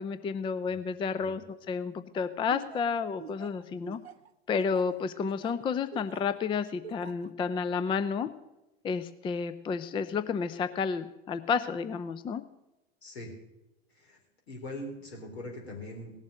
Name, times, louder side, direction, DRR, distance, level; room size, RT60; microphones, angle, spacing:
voice 1, 0.0-4.0 4.5-8.3 8.8-12.4, left 5 dB, 15° left, 12 dB, 0.5 m, -31 dB
Laughter, 2.5-6.4 6.8-7.3, right 8 dB, 80° right, 0.6 m, -46 dB
voice 2, 13.0-13.3 13.9-14.2 14.5-16.1, left 1 dB, 75° left, 1 dB, 3.8 m, -41 dB
17.5 x 7.3 x 6.4 m, 0.96 s
figure-of-eight pair, 85°, 31 cm